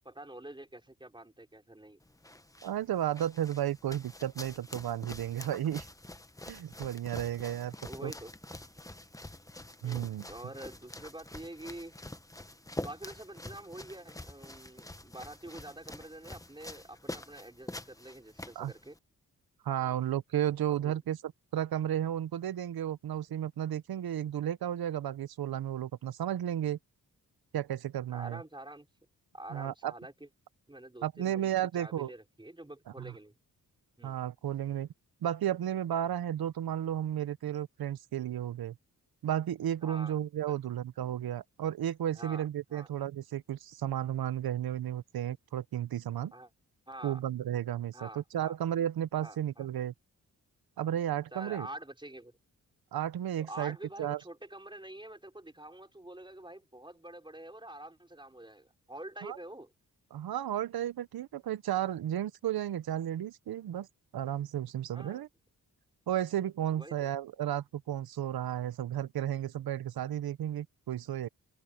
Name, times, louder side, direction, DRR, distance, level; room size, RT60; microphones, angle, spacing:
voice 1, 0.0-2.0 7.9-8.3 9.8-11.9 12.8-19.0 19.8-20.0 20.8-21.0 28.1-28.9 29.3-30.3 30.7-33.3 34.0-34.2 39.8-40.2 42.1-42.4 42.7-42.9 46.3-46.5 46.9-47.2 47.9-48.6 49.2-49.7 51.3-52.3 53.4-59.7 64.9-65.2 66.7-67.1, right 1 dB, 15° right, 5.4 m, -47 dB
sound 1, 2.0-19.0, left 1 dB, 10° left, 1.1 m, -46 dB
voice 2, 2.6-5.8 6.5-7.7 8.0-8.1 9.8-10.3 18.6-18.7 19.6-21.2 21.5-26.8 27.5-28.4 29.5-29.9 31.0-32.1 33.0-33.1 34.0-34.9 35.2-38.8 39.2-46.3 47.0-49.9 50.8-51.7 52.9-54.2 59.2-59.4 60.1-63.9 64.1-65.3 66.1-71.3, right 11 dB, 90° right, 0.8 m, -33 dB
cardioid pair, 80°, 35 cm